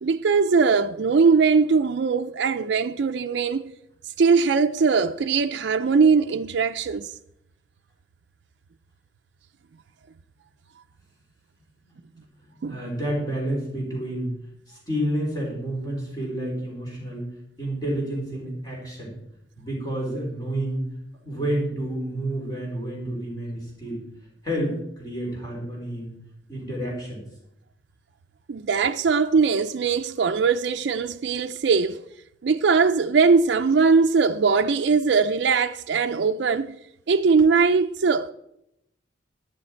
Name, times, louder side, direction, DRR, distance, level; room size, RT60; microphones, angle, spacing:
voice 1, 0.0-3.7 4.0-7.2 12.6-12.8 28.5-32.0 32.4-36.8 37.1-38.3, right 5 dB, 65° right, 0.4 m, -21 dB
voice 2, 12.5-14.3 14.7-17.3 17.6-19.2 19.6-20.9 21.2-24.0 24.4-26.1 26.5-27.2, right 1 dB, 20° left, 3.8 m, -29 dB
12.0 x 10.5 x 4.4 m
head